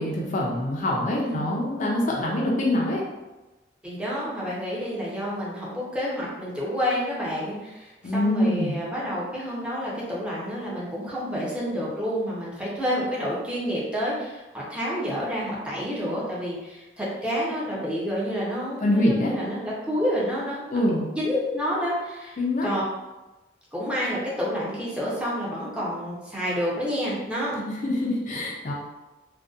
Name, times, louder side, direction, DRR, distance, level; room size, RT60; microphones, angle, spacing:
voice 1, 0.0-3.0 8.0-8.8 18.8-19.3 20.7-21.1 22.4-22.7 27.8-28.7, left 1 dB, 45° left, -2 dB, 0.4 m, -24 dB
voice 2, 3.8-20.8 21.1-22.8 23.7-27.6, equal, 5° right, -6 dB, 0.5 m, -29 dB
2.6 x 2.1 x 2.3 m, 1.1 s
head